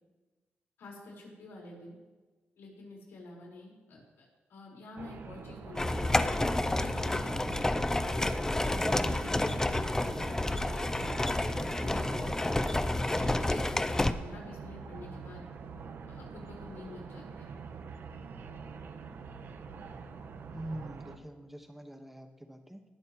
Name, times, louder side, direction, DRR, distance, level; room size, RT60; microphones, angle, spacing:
voice 1, 0.8-2.0 2.6-6.3 6.7-8.2 8.5-11.4 11.7-13.6 13.9-15.4 16.1-17.5, left 1 dB, 90° left, -2 dB, 4.7 m, -48 dB
sound 1, 5.0-21.2, right 5 dB, 65° right, 1.0 m, -45 dB
sound 2, 5.8-14.1, left 2 dB, 15° left, 0.6 m, -29 dB
voice 2, 20.5-22.9, right 1 dB, 5° right, 4 dB, 1.4 m, -44 dB
19.0 x 11.5 x 3.1 m, 1.3 s
cardioid pair, 110°, 4 cm